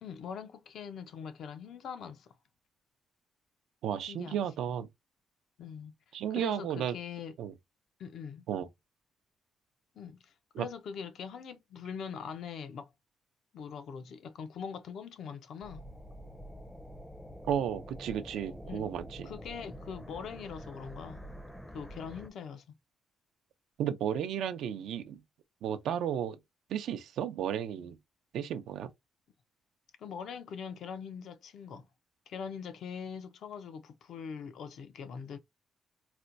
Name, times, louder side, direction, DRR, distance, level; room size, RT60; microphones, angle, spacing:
voice 1, 0.0-2.3 4.1-4.4 5.6-5.9 6.3-7.3 8.0-8.4 10.0-12.9 13.5-15.8 18.6-18.9 19.2-21.3 21.7-22.6 30.0-31.9 32.3-35.4, left 7 dB, 70° left, 0.6 m, -42 dB
voice 2, 3.8-4.9 6.1-7.0 7.4-7.5 8.5-8.7 10.6-10.7 17.4-19.3 23.8-25.2 25.6-26.4 26.7-28.0 28.3-28.9, right 9 dB, 90° right, 0.5 m, -33 dB
sound 1, 15.6-22.3, equal, 5° left, 0.5 m, -47 dB
4.2 x 2.2 x 2.5 m
cardioid pair, 115°, 0 cm